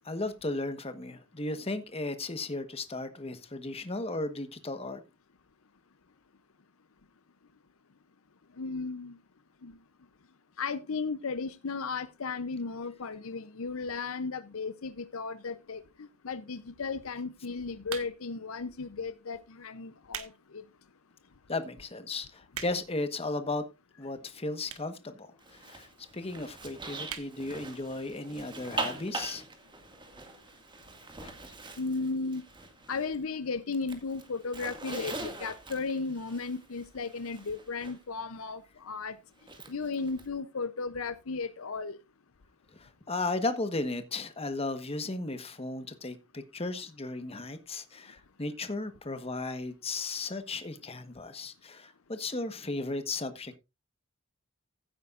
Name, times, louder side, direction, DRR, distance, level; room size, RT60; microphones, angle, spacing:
voice 1, 0.0-5.0 21.5-23.6 24.0-25.9 26.1-29.4 31.2-31.3 42.8-53.6, left 2 dB, 25° left, 1.3 m, -35 dB
voice 2, 8.6-9.2 9.6-9.7 10.6-20.6 31.8-32.5 32.9-39.2 39.7-42.0, left 4 dB, 70° left, 0.7 m, -35 dB
sound 1, 17.8-18.4 19.1-19.3 19.8-20.4 20.8-20.9 21.5-21.6 21.8-21.9 22.2-23.0 23.8-23.9 24.6-25.0 25.3-25.4 25.6-25.7 25.9-26.0 26.3-26.6 27.0-27.3 27.7-27.8 28.0-28.1, right 9 dB, 75° right, 1.5 m, -41 dB
Zipper (clothing), 25.4-33.3 33.5-38.0 39.4-40.2, right 3 dB, 20° right, 2.0 m, -42 dB
15.5 x 8.8 x 2.5 m
head